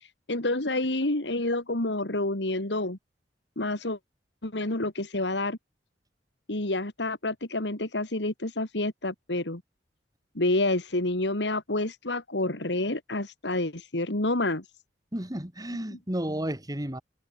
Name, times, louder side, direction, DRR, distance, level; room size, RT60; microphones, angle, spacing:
voice 1, 0.0-3.0 3.6-4.0 4.4-5.6 6.5-9.6 10.3-14.6 15.9-16.0, left 2 dB, 80° left, 2.9 m, -28 dB
voice 2, 15.1-17.0, right 1 dB, 20° right, 3.2 m, -32 dB
head